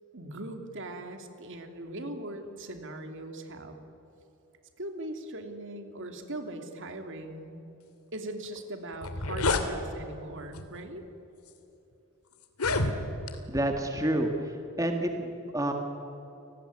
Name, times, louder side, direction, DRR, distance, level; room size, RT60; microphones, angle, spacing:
voice 1, 0.1-3.7 4.8-7.6 8.1-11.0, right 1 dB, 55° right, 6 dB, 2.9 m, -40 dB
sound 1, 8.6-8.7 8.9-9.7 10.5-10.8 11.5-11.6 12.4-13.4, left 3 dB, 80° left, 2.5 m, -28 dB
voice 2, 13.5-14.3 14.8-15.7, right 1 dB, 15° right, 4 dB, 1.9 m, -28 dB
29.5 x 19.5 x 9.8 m, 2.9 s
head